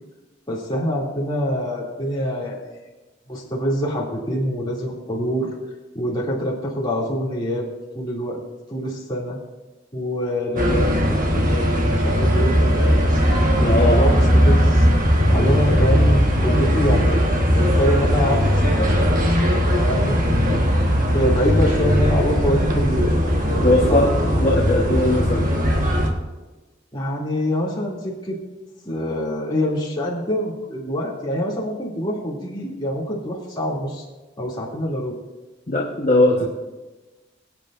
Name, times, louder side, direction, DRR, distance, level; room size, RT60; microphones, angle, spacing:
voice 1, 0.5-2.6 3.3-5.5 5.9-7.7 7.9-8.4 8.7-9.4 9.9-13.0 13.6-14.9 15.3-17.2 17.5-20.6 21.1-23.1 23.4-24.1 26.9-28.4 28.8-34.0 34.4-35.2 36.4-36.5, equal, 25° left, -5 dB, 2.7 m, -25 dB
sound 1, 10.6-26.1, equal, 40° right, 1.4 m, -18 dB
voice 2, 13.6-14.0 23.6-24.0 24.4-25.5 35.7-36.5, left 1 dB, 40° left, -4 dB, 1.2 m, -19 dB
23.5 x 8.8 x 2.6 m, 1.2 s
head